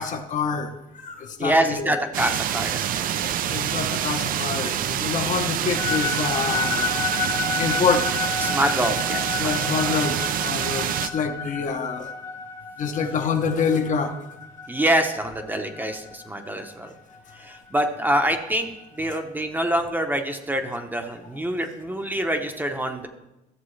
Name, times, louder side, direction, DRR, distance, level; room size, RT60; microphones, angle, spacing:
voice 1, 0.0-1.9 3.2-7.1 7.6-8.1 9.4-12.1 12.8-14.2, left 5 dB, 50° left, 6 dB, 0.9 m, -26 dB
voice 2, 1.4-3.1 4.7-4.9 8.4-10.0 14.7-16.9 17.3-18.7 18.9-23.1, right 1 dB, 10° right, 5 dB, 0.8 m, -26 dB
sound 1, 2.1-11.1, right 10 dB, 55° right, 0.5 m, -26 dB
sound 2, 5.8-17.9, left 5 dB, 15° left, 0.9 m, -31 dB
14.0 x 6.8 x 3.3 m, 0.95 s
cardioid pair, 110°, 17 cm